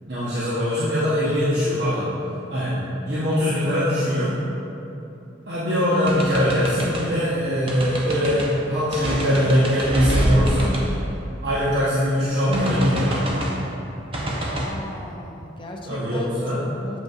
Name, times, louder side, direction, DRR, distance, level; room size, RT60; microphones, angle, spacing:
voice 1, 0.1-2.1 2.5-4.3 5.4-10.8 11.4-13.4 15.9-16.6, equal, 60° right, -10 dB, 0.8 m, -22 dB
sound 1, 6.1-7.1 7.7-8.5 8.9-11.8 12.5-13.6 14.1-14.7, right 1 dB, 30° right, 0.6 m, -26 dB
voice 2, 14.5-17.0, left 1 dB, 25° left, 0 dB, 0.5 m, -37 dB
7.5 x 5.3 x 2.4 m, 2.9 s
head